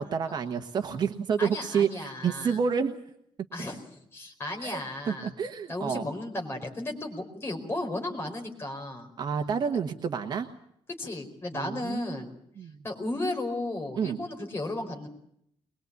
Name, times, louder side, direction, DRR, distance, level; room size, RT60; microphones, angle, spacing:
voice 1, 0.0-3.0 4.6-4.8 5.1-6.1 9.2-10.5 11.5-12.2 12.6-12.8 14.0-14.2, right 6 dB, 45° right, 5 dB, 1.2 m, -29 dB
voice 2, 1.4-2.6 3.5-5.3 5.7-9.1 11.0-12.3 12.8-15.1, left 2 dB, 25° left, 2 dB, 4.7 m, -34 dB
22.0 x 22.0 x 8.3 m, 0.72 s
cardioid pair, 170°, 10 cm